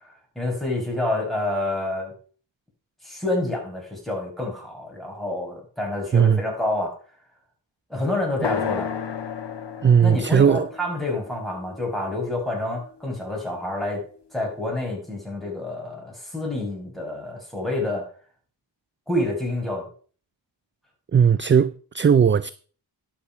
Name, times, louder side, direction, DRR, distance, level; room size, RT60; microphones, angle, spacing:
voice 1, 0.0-2.1 3.0-6.9 7.9-8.9 10.0-14.0 14.3-18.1 19.1-19.9, left 1 dB, ahead, 6.3 m, -28 dB
sound 1, 8.4-12.4, left 7 dB, 65° left, 1.3 m, -33 dB
voice 2, 9.8-10.7 21.1-22.5, right 7 dB, 30° right, 0.4 m, -17 dB
11.5 x 6.4 x 5.4 m
cardioid pair, 60°, 44 cm